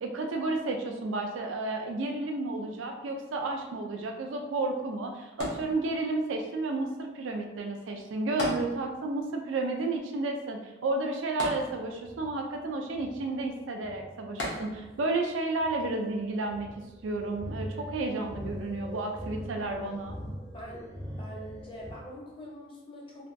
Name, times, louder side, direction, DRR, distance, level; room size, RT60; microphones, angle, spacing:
voice 1, 0.0-16.7 17.0-20.2, right 2 dB, 80° right, 3 dB, 0.4 m, -32 dB
sound 1, 5.4-6.3 8.4-9.2 9.5-9.6 11.4-12.2 14.4-15.1 15.8-15.9, left 1 dB, 70° left, 0.8 m, -36 dB
sound 2, 11.8-21.9, equal, 20° right, 0.5 m, -43 dB
voice 2, 20.5-20.9 21.2-23.3, equal, 25° left, -3 dB, 0.6 m, -44 dB
3.3 x 2.2 x 2.6 m, 1.0 s
head